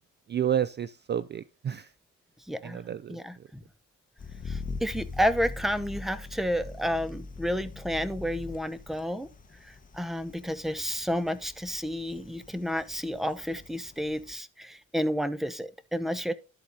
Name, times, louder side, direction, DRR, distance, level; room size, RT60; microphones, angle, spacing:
voice 1, 0.3-1.9 2.6-3.2, right 9 dB, 35° right, 0.4 m, -30 dB
voice 2, 2.5-2.8 3.1-3.6 4.4-9.3 9.6-16.3, equal, ahead, 0.7 m, -31 dB
sound 1, 4.2-14.4, left 3 dB, 25° left, 1.1 m, -42 dB
12.5 x 4.2 x 4.0 m
cardioid pair, 90°, 30 cm